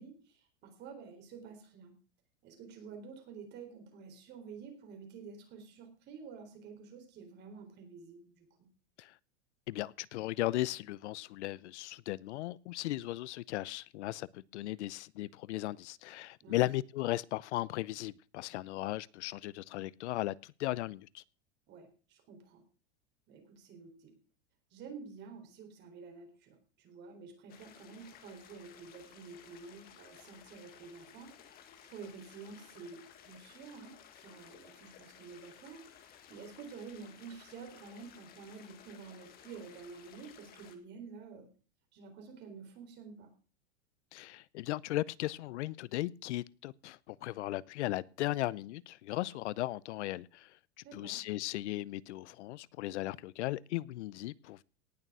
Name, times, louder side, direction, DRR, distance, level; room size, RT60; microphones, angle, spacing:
voice 1, 0.0-1.9 2.4-8.7 16.4-16.7 21.7-22.6 23.3-24.2 24.7-41.5 41.9-43.3 50.8-51.2, right 5 dB, 30° right, 4.0 m, -50 dB
voice 2, 9.7-21.2 44.1-50.6 50.9-54.6, left 16 dB, 75° left, 0.7 m, -37 dB
sound 1, 27.5-40.8, left 9 dB, 25° left, 1.7 m, -57 dB
18.0 x 6.8 x 6.1 m
supercardioid pair, 165°, 34 cm